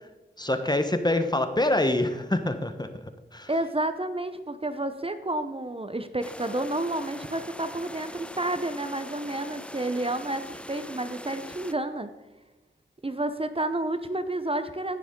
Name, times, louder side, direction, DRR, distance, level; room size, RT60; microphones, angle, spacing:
voice 1, 0.4-2.9 3.3-3.5, left 1 dB, 20° left, 8 dB, 1.1 m, -25 dB
voice 2, 3.5-12.1 13.0-15.0, right 1 dB, 30° right, 10 dB, 0.8 m, -30 dB
sound 1, 6.2-11.7, left 1 dB, 5° left, 0.4 m, -42 dB
16.5 x 7.1 x 3.8 m, 1.1 s
cardioid pair, 45°, 20 cm